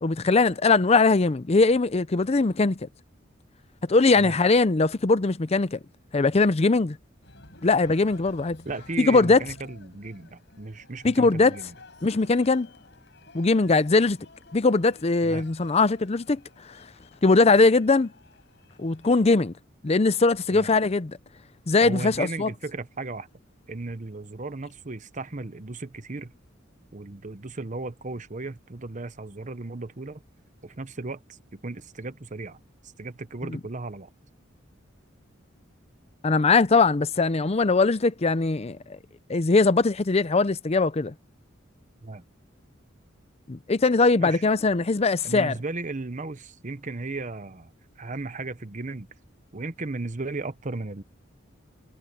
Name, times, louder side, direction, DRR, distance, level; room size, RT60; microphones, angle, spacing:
voice 1, 0.0-2.8 3.9-5.8 6.1-7.0 7.6-8.6 9.0-9.4 11.0-11.6 12.0-12.7 13.3-14.2 14.5-16.4 17.2-18.1 18.8-19.5 19.8-21.2 21.7-22.5 36.2-39.0 39.3-41.1 43.5-45.5, left 3 dB, 30° left, 0.6 m, -21 dB
Cheering, 7.2-19.2, left 3 dB, 65° left, 5.5 m, -52 dB
voice 2, 8.6-11.7 15.2-15.5 20.5-20.7 21.8-23.3 23.7-26.3 26.9-30.2 30.6-31.2 31.5-32.6 33.0-34.1 42.0-42.2 44.2-44.4 45.2-49.1 49.5-51.0, right 3 dB, 40° right, 1.0 m, -35 dB
head